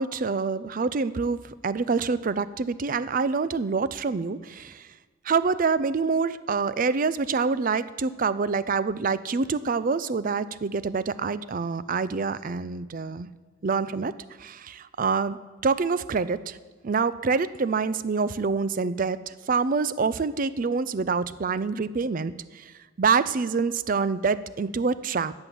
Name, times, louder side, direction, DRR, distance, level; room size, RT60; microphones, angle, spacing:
voice 1, 0.0-4.9 5.2-13.3 13.6-14.1 14.4-16.6 16.8-22.7 23.0-25.3, right 4 dB, 45° right, 16 dB, 0.5 m, -26 dB
14.0 x 8.9 x 7.0 m, 1.4 s
head